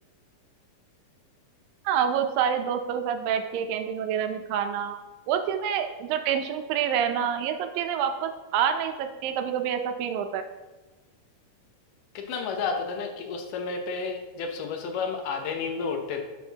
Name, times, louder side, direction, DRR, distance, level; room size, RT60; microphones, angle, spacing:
voice 1, 1.9-5.0 5.3-10.4, right 8 dB, 90° right, 7 dB, 2.4 m, -27 dB
voice 2, 12.2-16.2, left 5 dB, 75° left, 4 dB, 2.4 m, -31 dB
11.5 x 6.2 x 2.8 m, 1.2 s
omnidirectional pair, 3.9 m